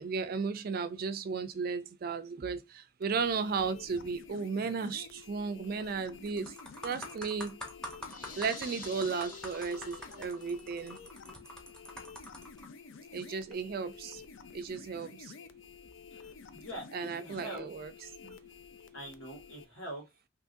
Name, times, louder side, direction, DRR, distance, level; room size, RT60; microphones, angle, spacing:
voice 1, 0.0-6.6 6.8-7.6 8.4-11.0 13.1-14.2 14.5-15.3 16.9-17.9 18.2-18.4, right 5 dB, 50° right, 0.3 m, -35 dB
sound 1, 3.0-19.7, left 5 dB, 70° left, 0.4 m, -51 dB
sound 2, 5.6-5.9 6.3-12.7 13.3-13.5, left 1 dB, 5° left, 0.7 m, -45 dB
sound 3, 8.0-10.5, left 3 dB, 45° left, 0.8 m, -48 dB
voice 2, 16.1-17.7 18.9-20.0, right 1 dB, 90° left, 1.9 m, -44 dB
3.6 x 2.9 x 2.6 m
head